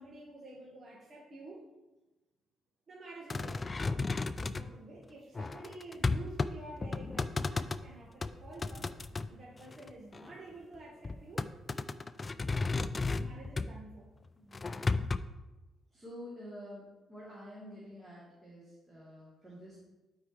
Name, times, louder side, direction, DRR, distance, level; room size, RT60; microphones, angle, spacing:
voice 1, 0.0-1.7 2.9-3.7 4.5-11.5 13.1-14.1, right 2 dB, 45° right, -5 dB, 1.6 m, -49 dB
sound 1, 3.3-4.7 5.4-6.5 6.8-7.8 8.2-9.3 9.7-10.3 11.0-13.8 14.5-15.2, left 3 dB, 30° left, 0.4 m, -34 dB
voice 2, 14.3-15.1 15.9-16.8 17.1-19.8, equal, 15° right, -9 dB, 2.8 m, -49 dB
12.0 x 4.8 x 3.2 m, 1.1 s
cardioid pair, 90°, 0 cm